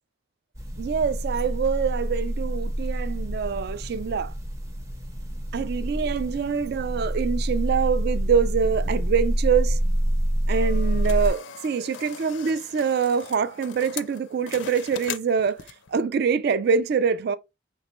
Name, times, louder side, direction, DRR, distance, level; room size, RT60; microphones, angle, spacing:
sound 1, 0.5-11.3, equal, 15° right, 0.6 m, -27 dB
voice 1, 0.8-4.3 5.5-9.8 10.5-15.6 15.9-17.4, right 6 dB, 55° right, 0.4 m, -25 dB
sound 2, 10.5-15.9, left 9 dB, 65° left, 0.4 m, -40 dB
5.4 x 3.0 x 2.9 m
head